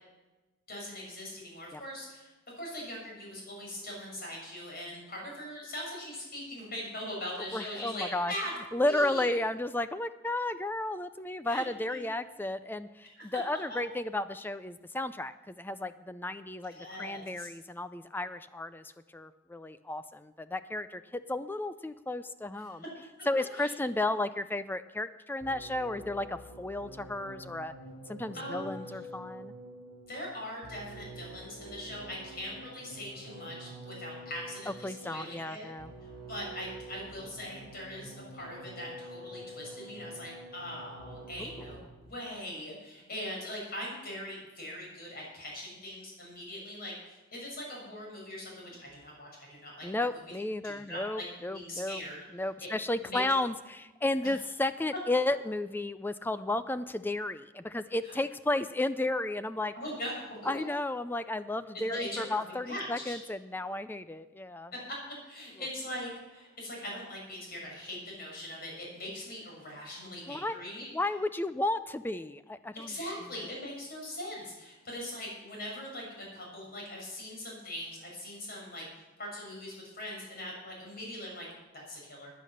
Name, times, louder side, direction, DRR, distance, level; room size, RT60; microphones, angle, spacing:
voice 1, 0.7-9.3 11.4-11.6 11.9-12.0 13.2-13.4 16.6-17.5 22.6-22.9 23.5-23.7 28.3-29.0 30.1-35.7 36.0-50.2 50.6-52.2 52.6-52.7 53.0-53.2 58.0-58.2 59.7-60.6 61.9-62.2 62.6-63.2 64.9-65.0 65.2-70.9 72.7-81.5 81.7-82.3, left 1 dB, 45° left, -2 dB, 6.3 m, -41 dB
voice 2, 7.5-8.3 8.7-22.8 23.3-27.7 28.1-29.5 34.8-35.9 41.4-41.7 49.8-52.0 52.3-59.7 60.5-64.7 70.3-70.6 70.9-72.9, left 2 dB, 10° left, 12 dB, 0.4 m, -33 dB
sound 1, 25.4-42.0, right 1 dB, 70° left, 6.1 m, -47 dB
15.0 x 10.0 x 6.5 m, 1.1 s
head